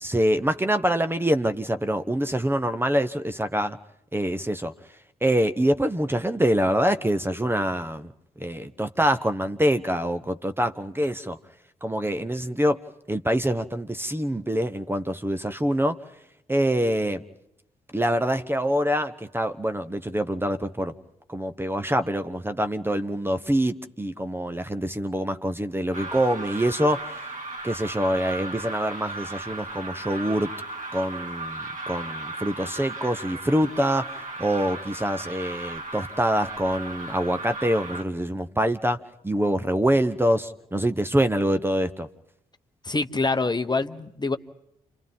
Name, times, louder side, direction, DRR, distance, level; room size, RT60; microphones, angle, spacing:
voice 1, 0.0-3.8 4.1-4.7 5.2-8.1 8.4-11.4 11.8-12.8 13.1-16.0 16.5-17.2 17.9-20.9 21.3-27.1 27.6-30.5 30.9-34.1 34.4-39.0 39.2-42.1, equal, 10° right, 10 dB, 1.1 m, -25 dB
sound 1, 25.9-38.0, right 2 dB, 45° right, 2.2 m, -36 dB
voice 2, 42.8-44.4, left 3 dB, 25° left, 9 dB, 1.2 m, -25 dB
29.5 x 27.0 x 3.7 m, 0.82 s
hypercardioid pair, 40°, 18 cm